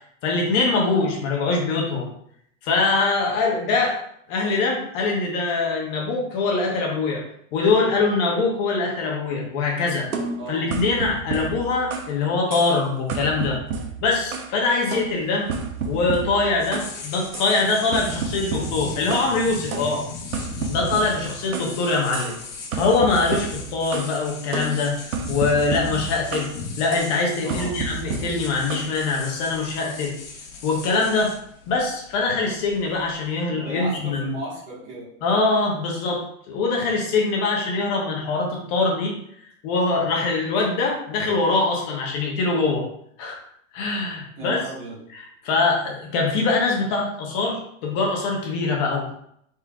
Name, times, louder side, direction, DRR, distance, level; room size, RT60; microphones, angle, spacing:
voice 1, 0.2-2.1 2.6-4.0 4.3-7.2 7.5-10.1 10.5-13.6 14.0-15.5 15.9-20.0 20.7-22.3 22.7-24.9 25.3-26.5 26.8-30.1 30.6-31.3 31.7-34.3 35.2-39.1 39.6-42.8 43.2-43.4 43.7-44.6 45.1-49.1, left 3 dB, 30° left, -1 dB, 1.0 m, -23 dB
sound 1, 10.1-12.2 12.5-12.8 13.1-14.6 14.9-16.9 17.3-17.5 17.9-19.3 19.7-21.8 22.1-22.4 22.7-24.1 24.5-26.6 26.9-27.2 27.5-28.9, right 5 dB, 85° right, 0.9 m, -31 dB
voice 2, 10.4-10.7 27.4-27.8 33.5-35.1 44.4-45.0, right 2 dB, 25° right, -6 dB, 1.6 m, -35 dB
sound 2, 15.1-33.4, left 4 dB, 55° left, 1.4 m, -38 dB
5.0 x 4.2 x 2.4 m, 0.70 s
hypercardioid pair, 155°, 42 cm